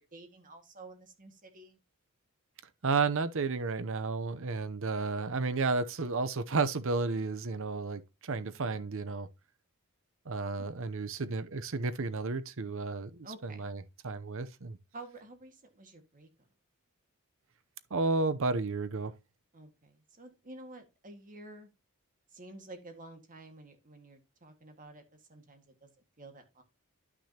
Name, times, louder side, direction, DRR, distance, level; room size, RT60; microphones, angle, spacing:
voice 1, 0.1-1.8 10.6-10.7 13.2-13.7 14.9-16.3 19.5-21.7 22.3-25.9 26.2-26.6, right 2 dB, 40° right, 1.8 m, -50 dB
voice 2, 2.8-9.3 10.3-14.8 17.9-19.1, right 3 dB, 65° right, 0.8 m, -32 dB
11.5 x 6.1 x 2.9 m
head